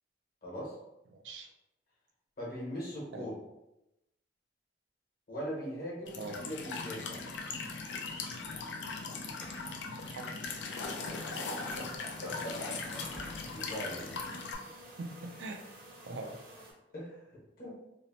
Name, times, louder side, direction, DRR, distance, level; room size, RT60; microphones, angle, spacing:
voice 1, 0.4-0.7 2.4-3.4 5.3-7.2 11.1-11.3 11.7-12.8 13.5-14.1 16.9-17.7, equal, 55° left, -4 dB, 1.0 m, -41 dB
voice 2, 1.1-1.5 3.1-3.3 6.1-6.5 10.0-10.4 15.0-15.6 16.1-16.4, right 2 dB, 85° right, 3 dB, 0.4 m, -42 dB
Walk footsteps / Chirp tweet / Stream, 6.1-14.6, left 4 dB, 85° left, 0.4 m, -39 dB
sound 1, 9.3-9.9 10.6-11.1 12.7-13.9, equal, 5° left, 0.5 m, -50 dB
sound 2, 10.9-16.7, right 1 dB, 55° right, 0.7 m, -52 dB
2.7 x 2.0 x 2.7 m, 0.91 s
head